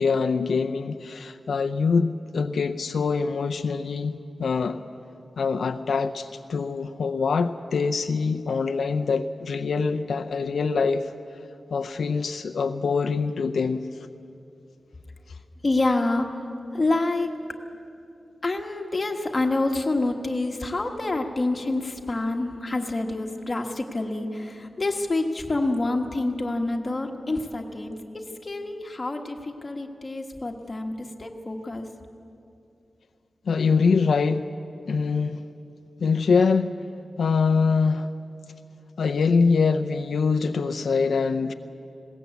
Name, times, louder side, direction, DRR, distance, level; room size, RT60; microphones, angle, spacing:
voice 1, 0.0-4.8 5.4-11.1 11.7-13.8 33.5-34.4 34.9-35.5 36.0-36.7 37.2-38.1 39.0-41.5, left 5 dB, 90° left, 7 dB, 0.6 m, -24 dB
voice 2, 15.6-16.3 16.7-17.3 18.4-30.9 31.2-31.9, left 2 dB, 30° left, 2 dB, 1.4 m, -27 dB
20.5 x 17.5 x 8.2 m, 2.7 s
wide cardioid pair, 160°, 0 cm